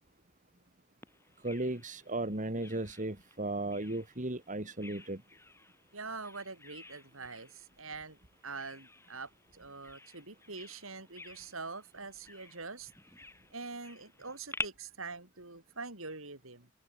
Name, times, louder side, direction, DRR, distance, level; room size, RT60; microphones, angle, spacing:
Bird vocalization bird call bird song, 1.0-14.7, left 2 dB, 10° left, 4.4 m, -49 dB
voice 1, 1.4-5.2, right 2 dB, 35° right, 2.9 m, -35 dB
voice 2, 5.9-8.2 8.4-12.9 13.5-16.7, right 4 dB, 70° right, 7.4 m, -44 dB
open air
head